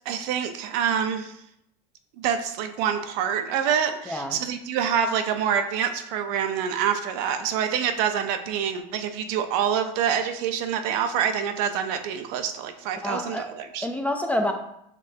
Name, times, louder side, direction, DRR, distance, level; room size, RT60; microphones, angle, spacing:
voice 1, 0.1-1.3 2.2-13.9, right 8 dB, 70° right, 8 dB, 0.5 m, -26 dB
voice 2, 4.1-4.4 13.0-13.5 13.8-14.5, left 1 dB, 5° left, 4 dB, 0.4 m, -27 dB
5.2 x 3.1 x 2.7 m, 0.77 s
supercardioid pair, 120°, 21 cm